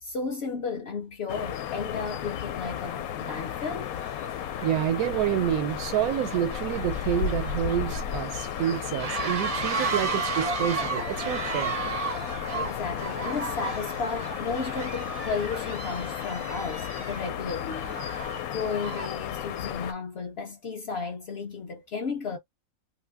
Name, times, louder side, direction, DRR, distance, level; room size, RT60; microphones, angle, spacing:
voice 1, 0.0-3.9 12.5-18.0 18.5-22.4, left 4 dB, 60° left, 0.7 m, -34 dB
sound 1, 1.3-19.9, left 9 dB, 80° left, 1.0 m, -34 dB
sound 2, 1.9-2.0 2.7-2.9 3.2-19.2, right 4 dB, 55° right, 0.4 m, -35 dB
voice 2, 4.6-11.7, right 11 dB, 85° right, 1.1 m, -28 dB
2.7 x 2.5 x 3.4 m
omnidirectional pair, 1.5 m